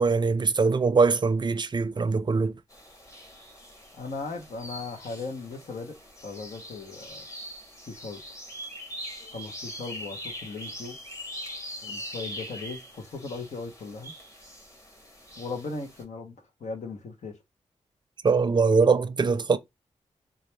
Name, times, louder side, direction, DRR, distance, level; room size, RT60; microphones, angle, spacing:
voice 1, 0.0-2.6 18.2-19.6, right 4 dB, 40° right, 0.5 m, -22 dB
sound 1, 2.7-16.0, equal, 25° left, 1.5 m, -42 dB
voice 2, 3.9-5.9 6.2-7.3 7.9-8.2 9.3-11.0 11.8-14.1 15.4-16.4 16.6-17.3, left 4 dB, 75° left, 0.9 m, -37 dB
4.0 x 2.4 x 3.2 m
cardioid pair, 55°, 12 cm